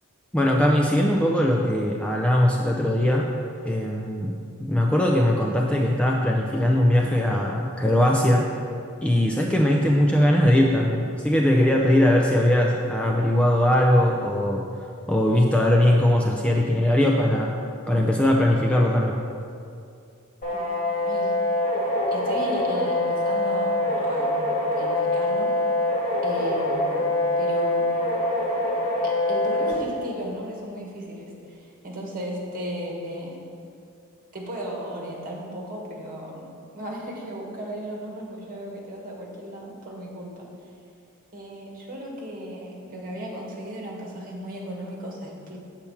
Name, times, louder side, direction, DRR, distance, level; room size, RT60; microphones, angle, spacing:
voice 1, 0.3-3.3 3.6-8.5 9.0-14.7 15.1-17.6 17.9-19.2, left 1 dB, 5° left, 0 dB, 0.4 m, -20 dB
sound 1, 20.4-29.7, left 1 dB, 40° left, 2.1 m, -24 dB
voice 2, 20.5-21.3 22.1-24.4 24.7-25.5 26.2-27.1 27.4-27.9 29.0-33.4 34.3-40.5 41.3-45.6, equal, 40° right, -2 dB, 1.7 m, -35 dB
8.3 x 4.4 x 7.1 m, 2.4 s
head